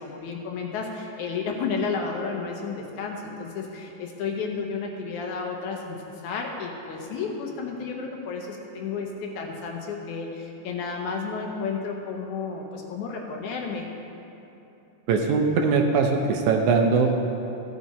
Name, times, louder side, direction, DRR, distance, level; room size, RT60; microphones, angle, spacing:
voice 1, 0.0-13.9, left 5 dB, 75° left, 1 dB, 2.2 m, -32 dB
voice 2, 15.1-17.3, right 4 dB, 75° right, 3 dB, 2.0 m, -21 dB
15.0 x 7.4 x 4.2 m, 2.9 s
omnidirectional pair, 3.7 m